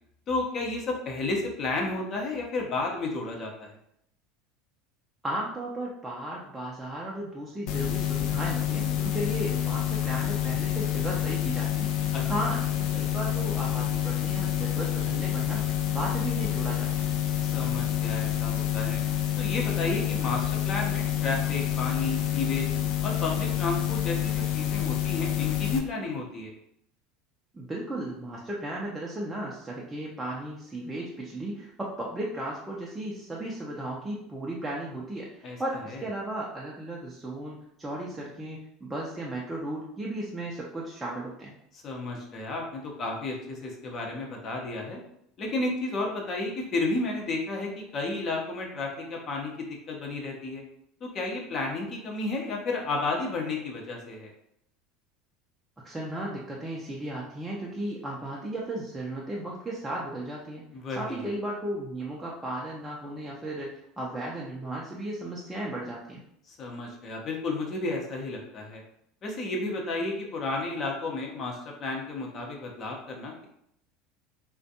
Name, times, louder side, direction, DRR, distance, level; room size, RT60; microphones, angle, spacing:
voice 1, 0.3-3.8 12.1-12.2 17.4-19.0 19.4-22.7 23.0-26.5 35.4-35.6 35.9-36.0 41.8-45.0 45.4-50.6 51.0-54.3 60.7-61.3 66.5-68.8 69.2-73.4, left 2 dB, 45° left, 0 dB, 0.7 m, -32 dB
voice 2, 5.2-17.1 27.5-41.5 55.8-60.6 60.9-66.2, right 1 dB, 15° right, -4 dB, 0.5 m, -35 dB
sound 1, 7.7-25.8, left 11 dB, 60° left, 0.3 m, -28 dB
2.4 x 2.2 x 2.7 m, 0.74 s
hypercardioid pair, 75°, 0 cm